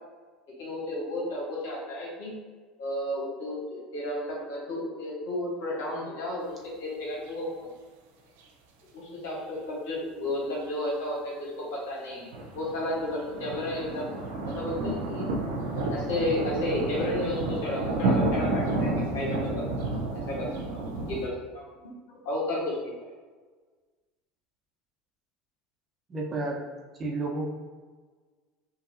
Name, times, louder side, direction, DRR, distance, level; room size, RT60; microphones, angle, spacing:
voice 1, 0.6-2.4 2.8-7.7 8.9-12.3 12.5-14.1 14.5-15.3 15.7-19.8 20.3-21.7 22.1-23.1, left 1 dB, 70° left, -4 dB, 1.4 m, -33 dB
sound 1, 12.3-21.3, right 2 dB, 70° right, 0.5 m, -30 dB
voice 2, 26.1-26.6 27.0-27.5, right 2 dB, 30° right, -2 dB, 1.0 m, -31 dB
5.5 x 2.6 x 2.7 m, 1.4 s
hypercardioid pair, 75°, 0 cm